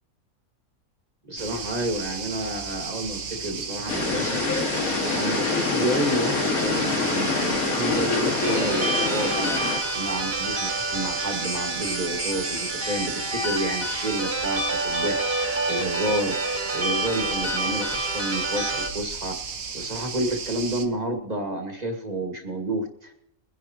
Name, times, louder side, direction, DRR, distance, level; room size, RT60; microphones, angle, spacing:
voice 1, 1.2-4.7 5.0-16.4 16.7-19.4 19.7-23.1, right 1 dB, 30° right, 4 dB, 1.9 m, -30 dB
sound 1, 1.4-20.8, right 5 dB, 75° right, 1.7 m, -34 dB
sound 2, 3.9-9.8, left 4 dB, 80° left, 2.4 m, -25 dB
sound 3, 8.4-18.9, right 2 dB, 45° right, 2.0 m, -28 dB
22.5 x 11.0 x 2.9 m, 0.77 s
omnidirectional pair, 1.5 m